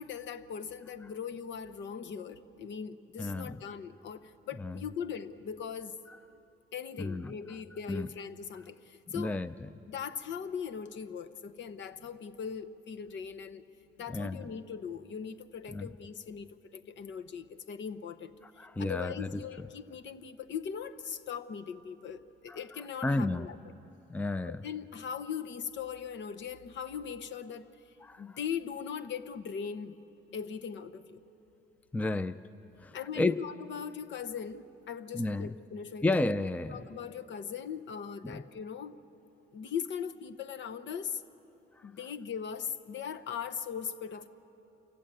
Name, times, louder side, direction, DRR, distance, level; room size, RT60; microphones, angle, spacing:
voice 1, 0.0-6.0 6.7-9.4 9.9-13.7 14.0-18.3 18.8-23.6 24.4-27.7 28.2-29.9 30.3-31.2 32.9-36.2 36.7-39.0 39.5-41.2 41.8-44.3, left 7 dB, 65° left, 10 dB, 1.0 m, -40 dB
voice 2, 3.2-3.6 4.6-4.8 6.1-6.2 7.0-7.3 7.9-8.1 9.1-9.7 14.1-14.5 15.7-15.9 18.6-19.4 22.5-22.6 23.0-23.5 24.1-24.6 28.0-28.4 31.9-32.4 32.8-33.4 35.1-35.6 36.0-36.9 38.2-38.4, left 2 dB, 5° left, 14 dB, 0.5 m, -32 dB
27.5 x 15.5 x 9.1 m, 3.0 s
cardioid pair, 90°, 20 cm